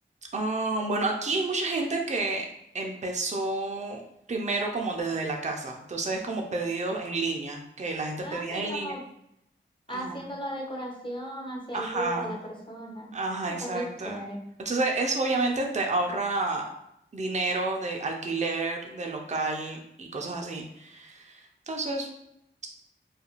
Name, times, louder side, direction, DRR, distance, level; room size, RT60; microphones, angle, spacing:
voice 1, 0.3-2.5 2.7-4.0 4.3-9.0 9.9-10.2 11.7-12.3 13.1-14.3 14.6-16.7 17.1-22.1, right 3 dB, 35° right, 1 dB, 0.4 m, -30 dB
voice 2, 8.2-9.0 9.9-13.1 13.4-14.4, equal, 25° left, -1 dB, 0.7 m, -36 dB
2.4 x 2.2 x 2.9 m, 0.78 s
wide cardioid pair, 55°, 21 cm